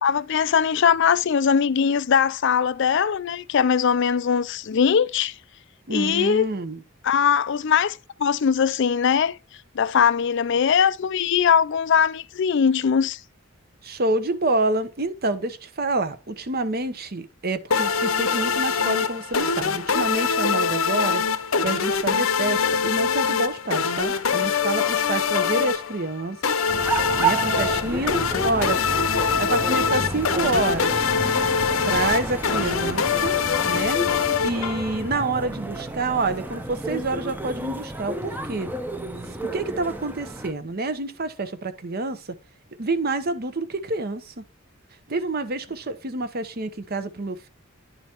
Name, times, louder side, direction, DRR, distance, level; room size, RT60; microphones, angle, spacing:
voice 1, 0.0-5.3 5.9-6.5 7.0-9.4 9.7-13.2, left 7 dB, 60° left, 0.4 m, -21 dB
voice 2, 5.9-6.8 13.8-21.2 21.6-26.7 27.2-28.1 28.4-28.8 29.4-31.0 31.8-33.4 33.6-34.0 34.4-38.7 39.5-42.2 42.8-44.4 45.1-47.5, right 2 dB, 45° right, 0.9 m, -27 dB
sound 1, 17.7-35.1, left 6 dB, 80° left, 0.8 m, -24 dB
sound 2, 26.7-40.5, right 2 dB, 10° right, 0.6 m, -31 dB
10.5 x 4.0 x 4.4 m
head